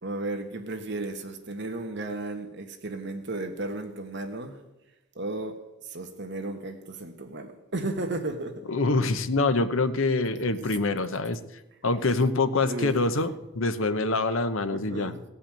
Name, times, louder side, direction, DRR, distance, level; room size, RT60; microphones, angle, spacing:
voice 1, 0.0-4.6 5.1-8.6 12.7-13.0 14.7-15.2, right 2 dB, 55° right, 1.4 m, -34 dB
voice 2, 8.7-11.4 11.8-15.1, left 3 dB, 65° left, 0.9 m, -25 dB
16.5 x 5.5 x 8.8 m
head